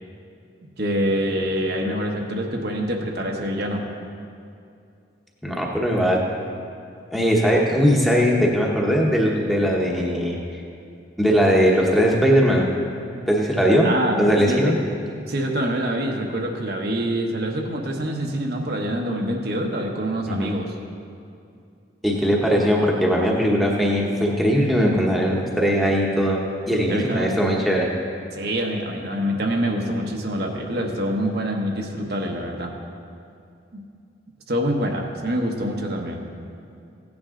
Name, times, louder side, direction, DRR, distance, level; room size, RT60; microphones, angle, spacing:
voice 1, 0.8-3.8 13.8-14.7 15.3-20.6 26.9-27.4 28.3-32.7 33.7-33.8 34.5-36.2, equal, 55° right, 1 dB, 1.1 m, -25 dB
voice 2, 5.4-6.2 7.1-10.4 11.2-12.7 13.3-13.9 14.2-14.7 20.3-20.5 22.0-27.9, equal, ahead, -2 dB, 1.1 m, -20 dB
16.0 x 9.6 x 3.8 m, 2.5 s
head